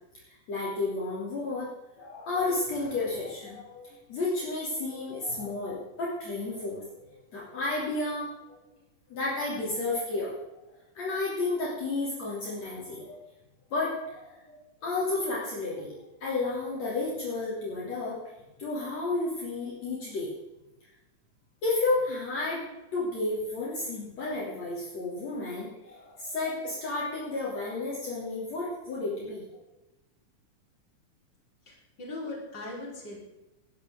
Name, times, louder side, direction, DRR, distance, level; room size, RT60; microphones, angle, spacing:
voice 1, 0.3-1.7 2.0-6.8 7.1-8.3 9.1-10.3 11.0-13.2 13.7-18.2 18.6-20.3 21.6-29.6, left 2 dB, 55° left, -6 dB, 4.2 m, -32 dB
voice 2, 31.7-33.2, left 2 dB, 35° left, -3 dB, 4.9 m, -39 dB
19.0 x 12.5 x 3.8 m, 0.97 s
omnidirectional pair, 3.6 m